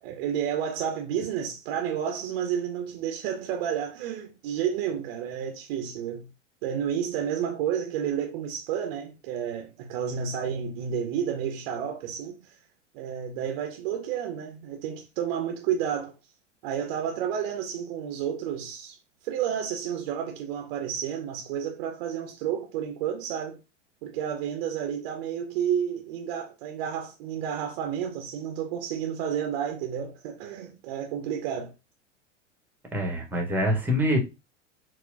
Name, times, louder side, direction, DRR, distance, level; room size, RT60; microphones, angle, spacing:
voice 1, 0.0-6.3 6.6-12.6 12.9-16.1 16.6-19.0 19.2-23.6 24.0-31.7, right 8 dB, 45° right, 0.7 m, -31 dB
voice 2, 32.9-34.2, equal, 5° right, 1.0 m, -25 dB
4.3 x 2.2 x 2.6 m
figure-of-eight pair, 85°, 37 cm